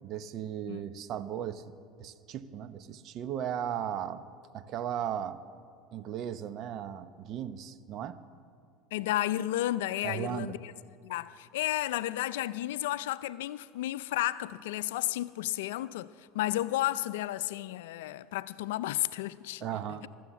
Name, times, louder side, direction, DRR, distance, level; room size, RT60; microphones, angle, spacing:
voice 1, 0.0-1.6 2.0-4.2 4.5-5.4 5.9-8.2 10.0-10.6 19.6-20.1, right 9 dB, 50° right, 0.8 m, -36 dB
voice 2, 8.9-10.7 11.0-19.7, left 15 dB, 75° left, 0.4 m, -32 dB
23.5 x 7.8 x 7.3 m
hypercardioid pair, 80°, 0 cm